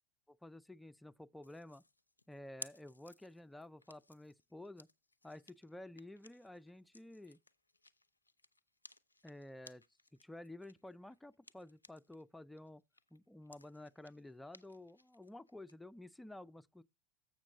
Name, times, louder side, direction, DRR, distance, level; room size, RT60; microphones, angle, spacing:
voice 1, 0.3-1.8 2.3-4.9 5.2-7.4 9.2-9.8 10.1-12.8 13.1-16.8, left 1 dB, 5° left, 0.3 m, -52 dB
sound 1, 1.4-12.2 12.6-15.7, left 2 dB, 90° left, 0.3 m, -59 dB
7.4 x 5.7 x 4.8 m
figure-of-eight pair, 85°, 0 cm